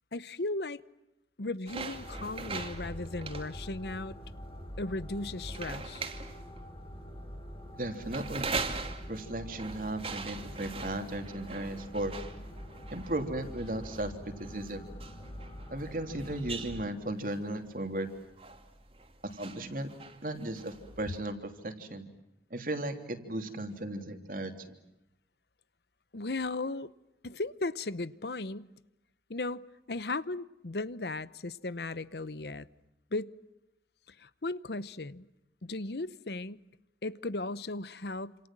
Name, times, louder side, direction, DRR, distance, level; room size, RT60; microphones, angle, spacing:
voice 1, 0.1-0.8 1.4-4.2 4.8-6.1 26.1-26.9 27.2-28.7 29.3-32.7 33.1-33.3 34.2-35.3 35.6-36.6 37.0-38.5, left 2 dB, 70° left, 0.9 m, -36 dB
sound 1, 1.7-21.2, right 4 dB, 35° right, 2.7 m, -42 dB
sound 2, 1.9-16.9, equal, 25° left, 5.9 m, -45 dB
voice 2, 7.7-8.4 9.1-12.1 12.9-14.9 15.7-18.1 19.2-19.9 20.2-22.1 22.5-24.7, right 1 dB, 50° right, 3.2 m, -36 dB
28.5 x 27.5 x 7.6 m
head